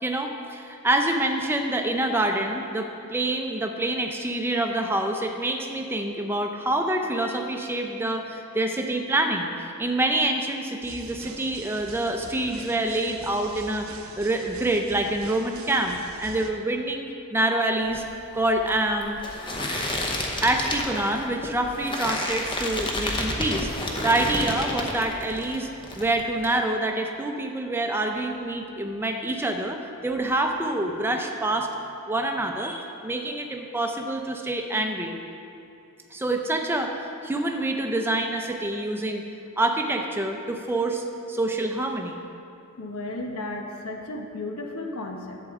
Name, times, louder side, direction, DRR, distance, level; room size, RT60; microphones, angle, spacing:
voice 1, 0.0-18.0 18.3-19.2 20.4-23.7 24.0-25.7 25.9-29.8 30.0-31.7 32.1-35.2 36.1-39.2 39.6-42.2, right 1 dB, 10° right, 3 dB, 0.6 m, -26 dB
sound 1, 10.8-16.5, right 4 dB, 70° right, 0.7 m, -43 dB
sound 2, 17.8-25.6 25.8-26.5, left 1 dB, 20° left, 0.8 m, -30 dB
voice 2, 42.8-45.4, left 2 dB, 85° left, 2 dB, 1.0 m, -34 dB
11.0 x 7.9 x 3.6 m, 2.7 s
head